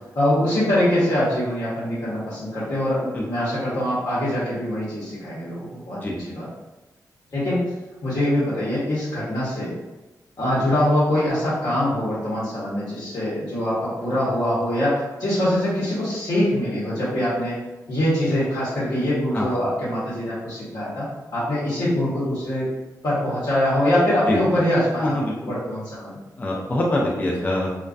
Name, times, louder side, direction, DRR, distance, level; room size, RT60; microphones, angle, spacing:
voice 1, 0.1-6.5 7.3-7.6 8.0-9.7 10.4-21.1 21.3-22.7 23.0-26.2, left 1 dB, 65° left, -10 dB, 0.8 m, -23 dB
voice 2, 25.0-25.5 26.4-27.7, left 1 dB, 25° left, -3 dB, 0.4 m, -24 dB
2.3 x 2.2 x 2.4 m, 1.1 s
cardioid pair, 95°, 7 cm